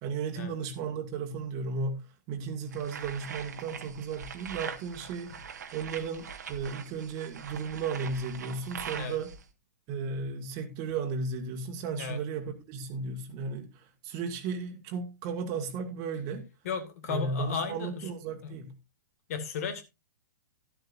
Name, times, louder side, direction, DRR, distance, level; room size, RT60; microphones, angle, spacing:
voice 1, 0.0-5.3 5.7-9.3 9.9-16.5 17.1-18.7, right 4 dB, 35° right, 1.8 m, -35 dB
sound 1, 2.7-9.4, right 7 dB, 65° right, 1.5 m, -42 dB
voice 2, 16.6-18.1 18.4-18.5 19.3-19.8, left 6 dB, 50° left, 2.0 m, -34 dB
12.0 x 12.0 x 2.6 m
figure-of-eight pair, 110°, 10 cm